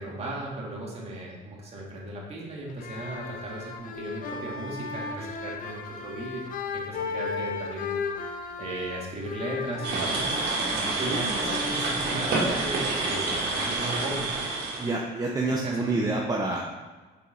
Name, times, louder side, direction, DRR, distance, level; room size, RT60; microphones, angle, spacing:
voice 1, 0.0-6.4 6.7-8.0 8.6-10.3 11.0-14.3 15.6-15.9, right 2 dB, 40° right, -3 dB, 1.9 m, -36 dB
sound 1, 2.7-12.5, left 4 dB, 55° left, 0.7 m, -36 dB
sound 2, 9.8-14.9, right 3 dB, 85° right, 1.5 m, -28 dB
voice 2, 14.8-16.6, right 2 dB, 20° right, -1 dB, 0.7 m, -28 dB
6.8 x 4.5 x 3.9 m, 1.3 s
cardioid pair, 110°, 17 cm